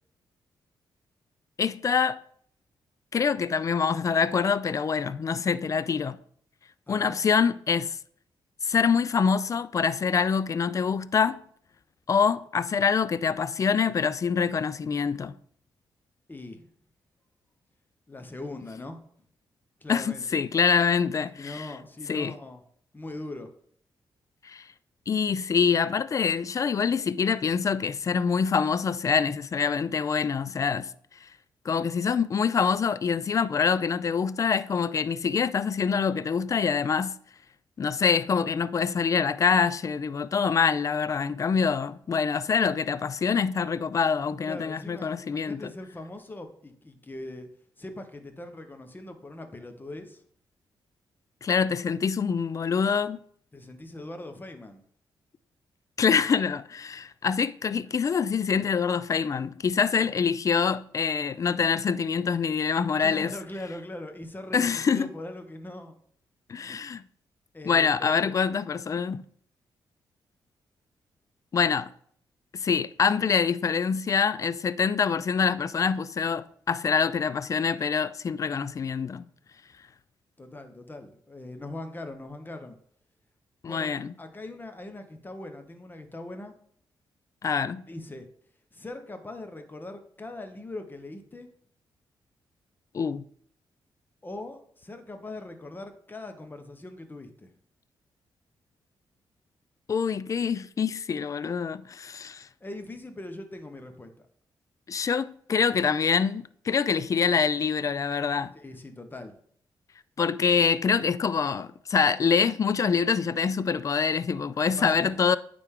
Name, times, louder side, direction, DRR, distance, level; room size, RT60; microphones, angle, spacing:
voice 1, 1.6-2.2 3.1-6.2 6.9-8.0 8.6-11.4 12.1-15.4 19.9-21.7 22.1-22.3 24.4-24.6 25.1-30.9 31.7-37.1 37.8-45.6 51.4-53.2 56.0-63.3 64.5-65.1 66.5-67.0 67.6-69.2 71.5-71.9 72.5-79.2 83.6-84.1 87.4-87.8 92.9-93.2 99.9-102.5 104.9-108.5 110.2-115.4, left 6 dB, 40° left, 0.3 m, -25 dB
voice 2, 16.3-16.6 18.1-19.0 19.8-20.2 21.3-22.6 22.9-23.5 44.5-47.5 47.8-50.2 53.5-54.8 60.0-60.1 63.0-66.0 66.7-66.8 67.5-68.4 80.4-82.8 83.6-83.9 84.2-86.5 87.9-88.3 88.7-91.5 94.2-97.5 102.6-104.3 108.5-109.4 114.8-115.1, left 2 dB, 20° left, 0.9 m, -41 dB
9.0 x 3.4 x 3.7 m
cardioid pair, 75°, 9 cm